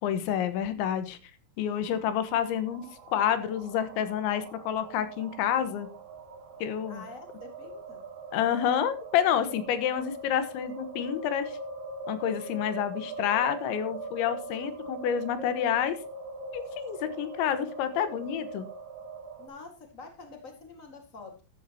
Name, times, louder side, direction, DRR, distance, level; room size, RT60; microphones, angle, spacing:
voice 1, 0.0-1.2 1.6-5.9 6.6-7.0 8.3-11.6 12.1-16.0 16.5-18.7, left 9 dB, 85° left, 10 dB, 3.6 m, -29 dB
sound 1, 1.6-19.5, right 2 dB, 55° right, 4.0 m, -42 dB
voice 2, 6.9-8.0 19.4-21.4, left 3 dB, 65° left, 4 dB, 0.8 m, -46 dB
13.5 x 13.0 x 2.9 m, 0.32 s
omnidirectional pair, 5.2 m